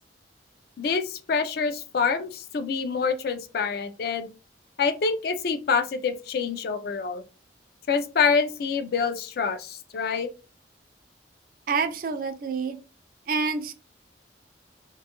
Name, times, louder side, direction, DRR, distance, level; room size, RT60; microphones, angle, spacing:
voice 1, 0.8-4.3 4.8-7.2 7.9-10.3, left 5 dB, 55° left, 9 dB, 0.3 m, -26 dB
voice 2, 11.7-12.8 13.3-13.7, right 5 dB, 45° right, 7 dB, 0.3 m, -27 dB
2.5 x 2.3 x 2.8 m, 0.32 s
head